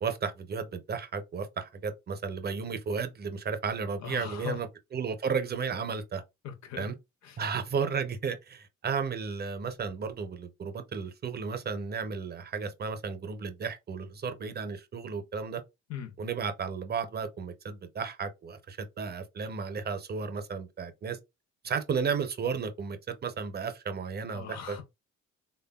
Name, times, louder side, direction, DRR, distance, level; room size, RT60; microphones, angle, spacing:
voice 1, 0.0-4.7 4.9-6.2 6.8-6.9 7.4-15.6 16.2-21.2 21.6-24.8, right 5 dB, 35° right, 0.6 m, -33 dB
voice 2, 4.0-4.6 6.4-6.9 7.2-7.4 15.9-16.1 24.3-24.8, left 8 dB, 65° left, 0.7 m, -39 dB
3.3 x 2.2 x 2.2 m
cardioid pair, 90°, 30 cm